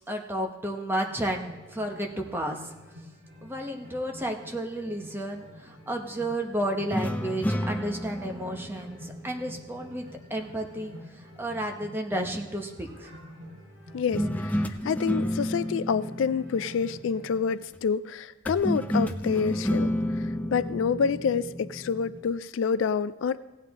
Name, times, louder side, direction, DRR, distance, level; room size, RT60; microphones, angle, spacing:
voice 1, 0.1-2.7 3.4-13.1, right 1 dB, 10° right, 2 dB, 1.0 m, -32 dB
sound 1, 1.0-17.4, equal, 55° right, 3.9 m, -48 dB
sound 2, 6.9-10.3 14.1-17.5 18.5-22.3, equal, 10° left, 0.5 m, -31 dB
voice 2, 13.9-23.4, left 6 dB, 70° left, 15 dB, 0.4 m, -28 dB
16.5 x 9.2 x 3.6 m, 1.2 s
head